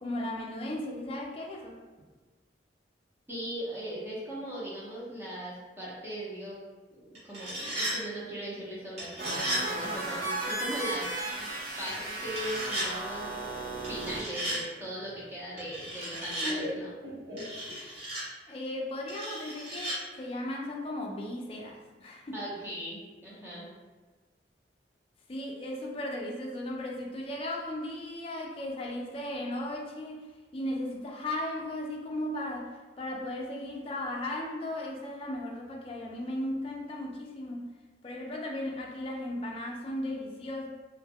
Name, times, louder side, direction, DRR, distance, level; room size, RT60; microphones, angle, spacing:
voice 1, 0.0-1.8 18.5-22.4 25.3-30.3 30.5-37.7 38.0-40.7, left 1 dB, 30° left, -1 dB, 0.4 m, -36 dB
voice 2, 3.3-6.6 6.9-11.1 11.8-13.3 13.8-16.9 22.3-23.7, equal, 10° right, -7 dB, 0.6 m, -39 dB
sound 1, 7.2-8.0 9.0-9.6 12.3-12.9 13.8-14.6 15.6-16.5 17.4-18.2 19.1-20.0, right 1 dB, 35° right, 1.0 m, -35 dB
sound 2, 9.2-14.2, right 2 dB, 55° right, 0.6 m, -35 dB
Laughter, 14.4-18.1, equal, 80° right, 1.0 m, -40 dB
2.1 x 2.1 x 3.4 m, 1.3 s
head